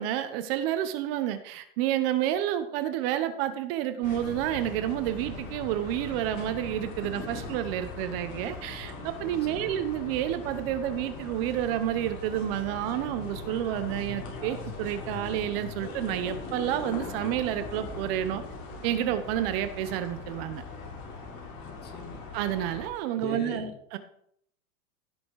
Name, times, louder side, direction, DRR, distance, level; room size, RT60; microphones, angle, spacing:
voice 1, 0.0-18.4 18.8-20.6 22.3-23.7 23.9-24.0, right 11 dB, 45° right, 11 dB, 1.0 m, -30 dB
sound 1, 4.0-22.9, left 3 dB, 40° left, 3.8 m, -40 dB
voice 2, 9.4-9.8 21.6-22.2 23.1-23.8, left 4 dB, 25° left, 5 dB, 1.8 m, -40 dB
16.0 x 7.0 x 4.7 m, 0.67 s
supercardioid pair, 155°, 42 cm